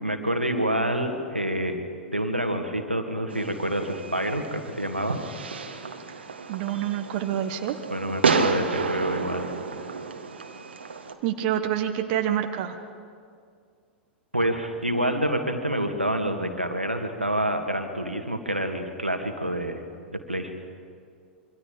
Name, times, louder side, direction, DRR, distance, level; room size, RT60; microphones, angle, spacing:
voice 1, 0.0-5.2 7.9-9.5 14.3-19.8 20.1-20.6, right 1 dB, 90° right, 5 dB, 2.0 m, -27 dB
Fireworks, 3.3-11.1, right 4 dB, 70° right, 1.7 m, -30 dB
voice 2, 6.5-7.8 11.2-12.8, right 10 dB, 45° right, 6 dB, 1.4 m, -27 dB
26.5 x 24.5 x 5.1 m, 2.2 s
figure-of-eight pair, 95°, 6 cm